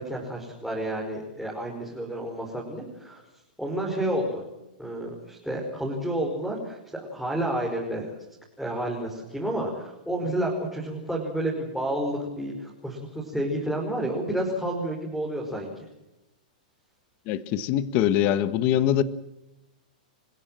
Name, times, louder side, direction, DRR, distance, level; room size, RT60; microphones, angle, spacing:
voice 1, 0.0-3.2 3.6-4.4 4.8-8.1 8.6-15.9, right 1 dB, ahead, -1 dB, 5.2 m, -30 dB
voice 2, 17.3-19.0, left 11 dB, 35° left, 15 dB, 1.3 m, -23 dB
29.5 x 16.0 x 7.7 m, 0.93 s
hypercardioid pair, 150°, 5 cm